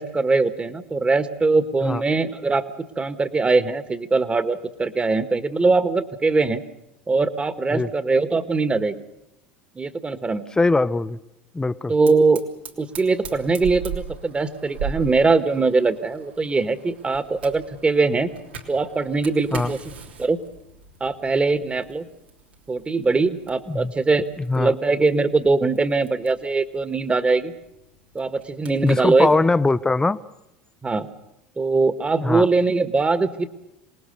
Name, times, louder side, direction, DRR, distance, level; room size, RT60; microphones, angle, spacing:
voice 1, 0.0-2.6 3.0-6.6 7.1-8.9 9.7-10.4 11.9-12.4 12.8-18.3 18.7-19.8 20.2-20.4 21.0-22.1 22.7-24.2 24.6-27.5 28.1-29.3 30.8-31.1 31.6-33.5, right 3 dB, 20° right, 11 dB, 1.7 m, -21 dB
voice 2, 10.6-11.2 11.5-11.9 19.5-19.7 23.7-23.9 24.4-24.7 28.8-30.2 32.2-32.5, left 3 dB, 10° left, 16 dB, 0.8 m, -21 dB
Fire, 12.1-29.4, right 6 dB, 85° right, 3.2 m, -40 dB
26.5 x 19.5 x 6.7 m, 0.88 s
hypercardioid pair, 80°, 6 cm